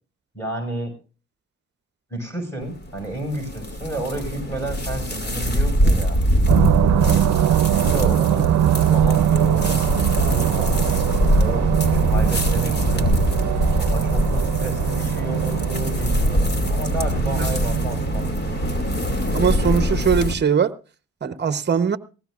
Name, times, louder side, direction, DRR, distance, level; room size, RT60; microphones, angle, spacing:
voice 1, 0.3-0.9 2.1-6.2 7.0-7.2 7.7-8.5 8.9-10.7 11.4-13.1 13.8-18.3, right 1 dB, 10° left, 6.1 m, -31 dB
sound 1, 2.6-20.3, equal, 35° left, 2.6 m, -23 dB
sound 2, 6.5-19.2, right 11 dB, 70° right, 0.7 m, -22 dB
voice 2, 19.3-20.7 21.2-22.0, right 7 dB, 35° right, 1.0 m, -20 dB
19.5 x 16.5 x 2.5 m
cardioid pair, 90°, 30 cm